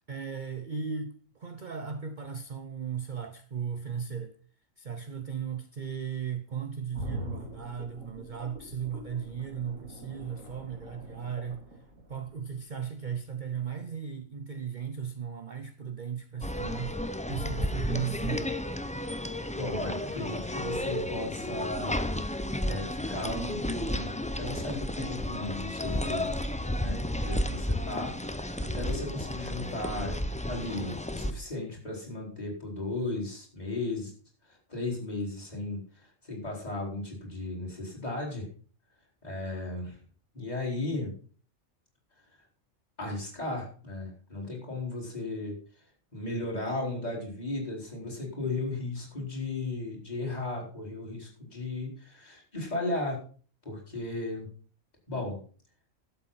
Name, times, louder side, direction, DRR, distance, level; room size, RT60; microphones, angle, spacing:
voice 1, 0.0-4.3 4.8-11.8 12.1-18.5, right 7 dB, 40° right, 0.8 m, -36 dB
sound 1, 6.9-12.8 13.1-13.2, equal, 70° right, 3.6 m, -43 dB
sound 2, 16.4-31.3, left 1 dB, 10° left, 0.5 m, -32 dB
voice 2, 19.5-21.9 22.7-26.3 26.8-28.1 28.6-30.2 30.5-34.1 34.4-38.5 39.2-40.0 40.3-41.1 43.0-45.8 46.1-53.2 53.6-54.5 55.1-55.4, left 2 dB, 30° left, 4.5 m, -35 dB
12.0 x 8.0 x 5.7 m
omnidirectional pair, 1.4 m